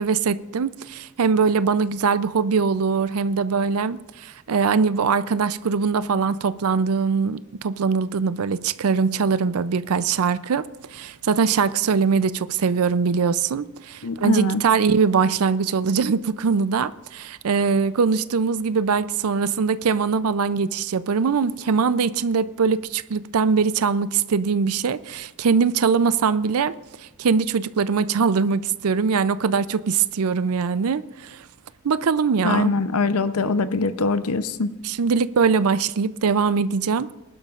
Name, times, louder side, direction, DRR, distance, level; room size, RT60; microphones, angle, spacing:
voice 1, 0.0-10.6 10.9-26.7 27.2-31.4 31.8-32.7 34.8-37.1, right 5 dB, 85° right, 0.5 m, -22 dB
voice 2, 14.0-14.6 32.4-34.7, left 3 dB, 90° left, 0.7 m, -23 dB
20.5 x 11.5 x 2.5 m
head